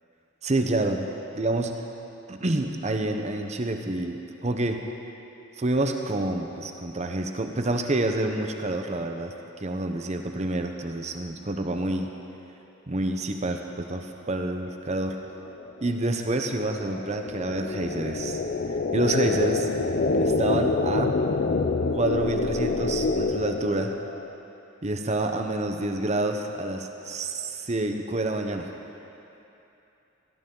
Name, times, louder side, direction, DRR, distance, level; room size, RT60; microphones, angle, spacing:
voice 1, 0.4-1.1 1.3-1.7 2.3-4.8 5.6-9.3 9.6-12.1 12.9-15.2 15.8-18.4 18.9-19.7 20.2-21.2 21.9-23.9 24.8-28.7, right 2 dB, 35° right, 4 dB, 0.8 m, -28 dB
sound 1, 15.5-24.3, left 3 dB, 45° left, 0.5 m, -27 dB
17.0 x 13.0 x 3.8 m, 2.9 s
head